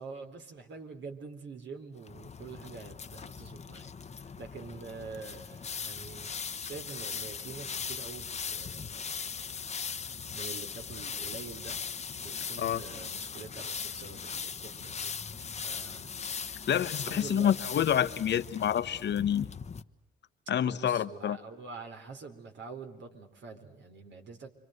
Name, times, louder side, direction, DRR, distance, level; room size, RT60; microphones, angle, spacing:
voice 1, 0.0-6.3 6.6-9.4 10.3-11.8 12.2-15.1 15.6-16.1 17.0-17.5 20.7-24.5, right 4 dB, 65° right, 4.0 m, -46 dB
sound 1, 2.0-19.8, left 6 dB, 35° left, 1.1 m, -39 dB
voice 2, 16.7-19.5 20.5-21.4, left 9 dB, 60° left, 1.2 m, -28 dB
29.5 x 24.0 x 8.0 m
cardioid pair, 90°, 20 cm